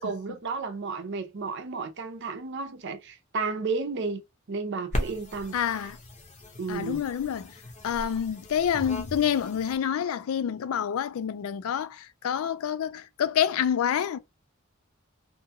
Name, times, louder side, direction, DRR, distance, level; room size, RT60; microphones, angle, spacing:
voice 1, 0.0-4.2 4.5-5.6 6.6-7.0, right 4 dB, 55° right, 0.6 m, -32 dB
sound 1, 4.9-9.8, left 1 dB, 35° left, 0.7 m, -37 dB
voice 2, 5.5-6.0 6.7-7.6 7.8-14.2, left 8 dB, 85° left, 0.3 m, -27 dB
2.6 x 2.4 x 2.7 m
head